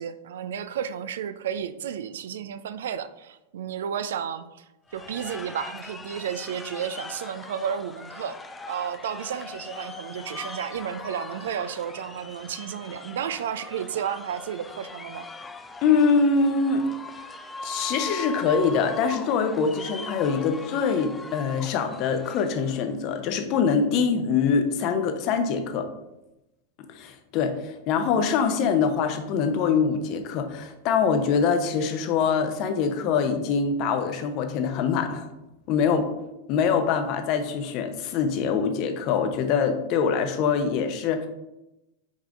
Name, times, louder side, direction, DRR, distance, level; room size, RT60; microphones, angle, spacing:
voice 1, 0.0-4.6 4.9-8.4 8.7-15.3, right 8 dB, 60° right, 12 dB, 0.3 m, -32 dB
sound 1, 4.9-22.9, left 3 dB, 15° left, 0.4 m, -40 dB
voice 2, 15.8-16.9 17.6-25.9 26.9-35.3 35.7-36.1 36.5-41.3, left 5 dB, 40° left, 7 dB, 0.8 m, -24 dB
5.5 x 4.8 x 3.7 m, 0.93 s
figure-of-eight pair, 90°, 0 cm